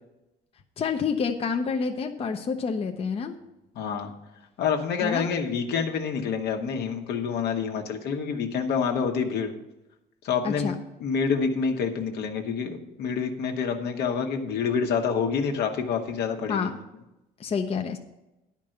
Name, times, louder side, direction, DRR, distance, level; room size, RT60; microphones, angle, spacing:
voice 1, 0.8-3.4 5.0-5.3 10.4-10.8 16.5-16.8 17.4-18.0, left 5 dB, 35° left, 4 dB, 0.7 m, -28 dB
voice 2, 3.7-4.1 4.6-9.5 10.2-10.7 11.0-16.7, left 6 dB, 75° left, 3 dB, 1.3 m, -27 dB
10.5 x 5.2 x 7.8 m, 0.96 s
cardioid pair, 110°, 17 cm